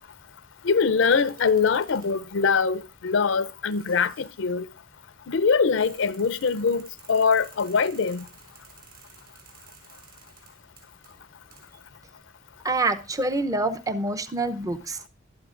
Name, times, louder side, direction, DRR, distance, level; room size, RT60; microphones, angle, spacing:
voice 1, 0.6-4.7 5.3-8.3, left 5 dB, 75° left, 0.6 m, -23 dB
sound 1, 1.0-2.3 3.2-3.3 3.7-4.4 5.7-11.9, right 7 dB, 55° right, 5.6 m, -53 dB
voice 2, 12.6-15.1, right 2 dB, 20° right, 0.7 m, -26 dB
20.5 x 12.5 x 2.5 m
head